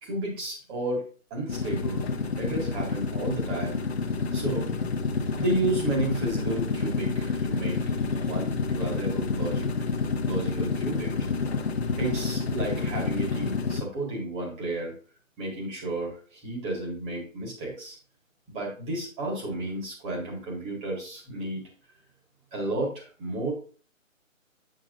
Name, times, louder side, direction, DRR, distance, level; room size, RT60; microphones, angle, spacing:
voice 1, 0.0-2.1 2.4-3.8 4.3-4.7 5.4-9.9 10.3-11.3 12.0-14.9 15.4-18.0 18.5-21.6 22.5-23.5, right 2 dB, 15° right, -2 dB, 1.9 m, -32 dB
sound 1, 1.5-13.8, left 4 dB, 50° left, 1.0 m, -29 dB
8.0 x 7.6 x 2.6 m, 0.38 s
figure-of-eight pair, 150°, 40 cm